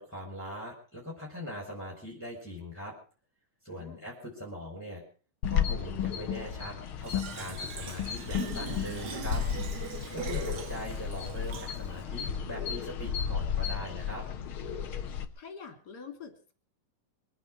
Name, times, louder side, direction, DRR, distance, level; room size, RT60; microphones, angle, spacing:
voice 1, 0.0-2.9 3.6-5.0 5.4-9.4 10.1-14.2, equal, 5° left, -1 dB, 4.5 m, -41 dB
voice 2, 3.7-4.1 10.3-10.5 15.4-16.5, left 6 dB, 30° left, 5 dB, 3.5 m, -46 dB
sound 1, 5.4-15.2, left 8 dB, 55° left, 1.5 m, -33 dB
Fill (with liquid), 7.0-12.0, right 7 dB, 85° right, 0.9 m, -42 dB
24.5 x 9.2 x 6.1 m, 0.40 s
omnidirectional pair, 3.9 m